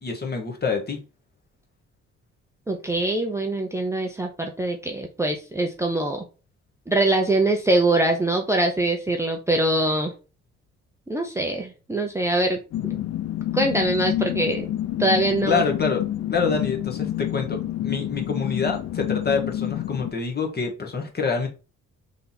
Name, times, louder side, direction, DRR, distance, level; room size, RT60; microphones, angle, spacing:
voice 1, 0.0-1.0 15.5-16.0 16.3-21.5, left 5 dB, 35° left, 1.2 m, -26 dB
voice 2, 2.7-6.2 6.9-10.1 11.1-12.6 13.5-14.7 15.0-15.6, right 2 dB, 10° right, 0.6 m, -23 dB
sound 1, 12.7-20.1, left 12 dB, 55° left, 0.5 m, -28 dB
3.4 x 2.9 x 4.0 m
cardioid pair, 90°, 30 cm